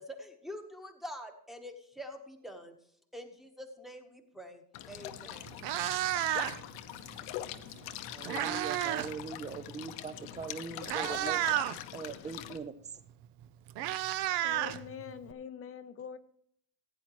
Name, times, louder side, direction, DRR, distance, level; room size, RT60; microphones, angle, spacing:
voice 1, 0.0-2.7 3.1-4.6 4.9-5.5, equal, ahead, 1.1 m, -45 dB
sound 1, 4.7-12.6, left 12 dB, 85° left, 1.0 m, -43 dB
Meow, 5.0-5.1 5.5-6.8 7.8-9.2 9.4-9.7 10.4-10.5 10.8-11.8 13.1-13.2 13.4-15.3, right 13 dB, 65° right, 0.8 m, -32 dB
voice 2, 8.1-11.4 11.9-12.7, right 5 dB, 15° right, 0.4 m, -41 dB
voice 3, 14.3-16.2, left 8 dB, 35° left, 0.5 m, -44 dB
15.5 x 9.4 x 3.1 m
cardioid pair, 155°, 43 cm